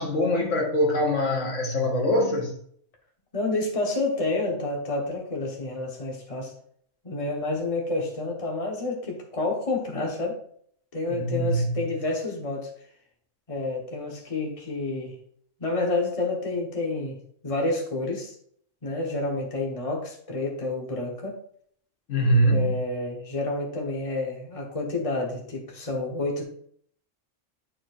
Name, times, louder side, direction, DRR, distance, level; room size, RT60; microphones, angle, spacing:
voice 1, 0.0-2.5 11.1-11.7 22.1-22.7, equal, 70° left, 1.7 m, -23 dB
voice 2, 3.3-6.5 7.0-10.4 10.9-12.7 13.5-15.1 15.6-18.3 18.8-21.4 22.5-26.4, left 2 dB, 25° left, 1.3 m, -29 dB
10.5 x 4.5 x 2.5 m
omnidirectional pair, 1.3 m